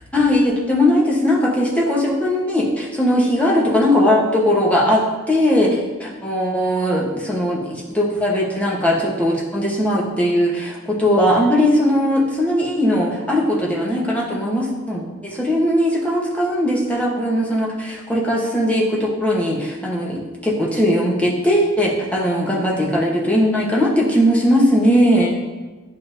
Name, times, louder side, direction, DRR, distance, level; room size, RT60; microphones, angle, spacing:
voice 1, 0.1-25.3, equal, 5° left, -4 dB, 1.1 m, -19 dB
10.5 x 3.6 x 2.7 m, 1.3 s
head